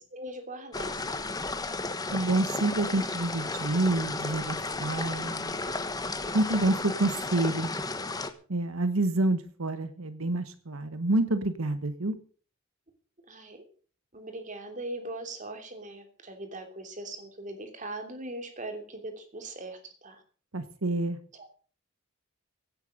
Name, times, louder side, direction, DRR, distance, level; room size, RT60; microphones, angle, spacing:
voice 1, 0.1-1.3 13.3-13.6 14.1-20.2 21.3-21.7, right 2 dB, 35° right, 6 dB, 3.1 m, -40 dB
sound 1, 0.7-8.3, left 3 dB, 20° left, 1.1 m, -33 dB
voice 2, 2.1-5.6 6.3-7.7 8.5-12.2 20.5-21.2, right 2 dB, 90° right, 11 dB, 1.3 m, -28 dB
17.0 x 8.9 x 6.6 m, 0.43 s
head